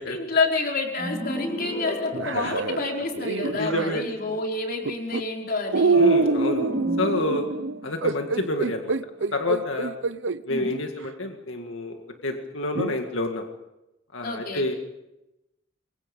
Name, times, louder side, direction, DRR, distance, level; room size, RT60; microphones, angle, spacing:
voice 1, 0.1-6.0 10.5-10.8 14.2-14.6, left 3 dB, 50° left, 0 dB, 4.7 m, -28 dB
sound 1, 1.0-3.4 5.8-9.1, equal, 25° left, 3.3 m, -35 dB
sound 2, 2.1-4.0 4.8-5.2 5.7-10.4 11.0-11.1 12.7-13.0, right 3 dB, 70° right, 0.8 m, -25 dB
voice 2, 3.6-4.4 6.0-6.7 7.0-7.4 7.8-8.9 9.3-9.9 10.5-12.0 12.2-13.5 14.1-14.8, left 2 dB, 85° left, 3 dB, 2.1 m, -28 dB
27.5 x 23.0 x 5.4 m, 0.93 s
head